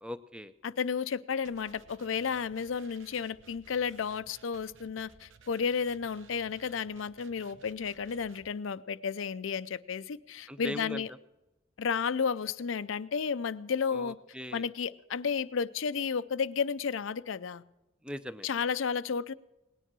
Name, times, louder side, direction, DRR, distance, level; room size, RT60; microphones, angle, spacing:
voice 1, 0.0-0.5 10.5-11.0 13.9-14.7 18.0-18.5, equal, 5° right, 0.5 m, -40 dB
voice 2, 0.6-11.1 11.8-14.2 14.5-17.6 18.4-19.3, left 6 dB, 75° left, 0.5 m, -32 dB
sound 1, 1.4-8.5, right 4 dB, 75° right, 0.9 m, -58 dB
19.0 x 10.0 x 6.1 m
head